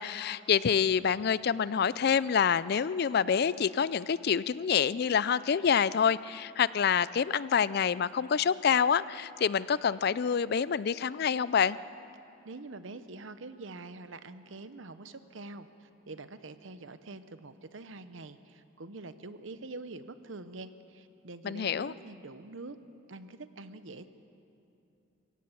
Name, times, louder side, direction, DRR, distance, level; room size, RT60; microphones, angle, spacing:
voice 1, 0.0-11.8 21.4-21.9, left 7 dB, 50° left, 18 dB, 0.4 m, -27 dB
voice 2, 12.4-22.8 23.1-24.1, right 3 dB, 70° right, 12 dB, 0.9 m, -45 dB
23.5 x 17.0 x 7.2 m, 2.7 s
head